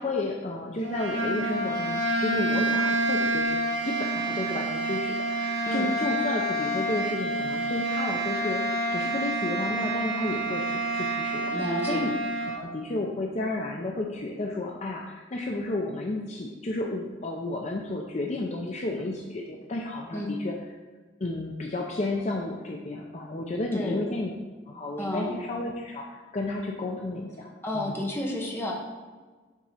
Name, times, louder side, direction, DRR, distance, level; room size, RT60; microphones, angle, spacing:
voice 1, 0.0-12.1 12.4-20.5 21.2-24.3 24.7-28.0, left 2 dB, 35° left, 0 dB, 0.5 m, -32 dB
sound 1, 0.8-12.6, right 1 dB, 85° right, 1.0 m, -28 dB
voice 2, 11.5-12.0 20.1-20.3 23.7-24.0 25.0-25.3 27.6-28.7, left 1 dB, 10° left, -2 dB, 1.1 m, -30 dB
7.3 x 3.8 x 5.6 m, 1.4 s
head